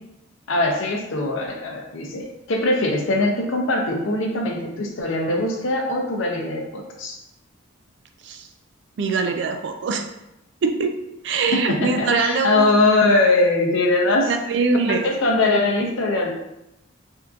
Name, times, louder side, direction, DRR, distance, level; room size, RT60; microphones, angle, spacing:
voice 1, 0.5-7.2 11.5-14.3 14.9-16.3, left 2 dB, 75° left, 1 dB, 0.6 m, -21 dB
voice 2, 9.0-10.1 10.6-11.0 11.2-12.7 14.0-15.0, right 4 dB, 60° right, 6 dB, 0.3 m, -23 dB
3.5 x 2.7 x 2.4 m, 0.87 s
head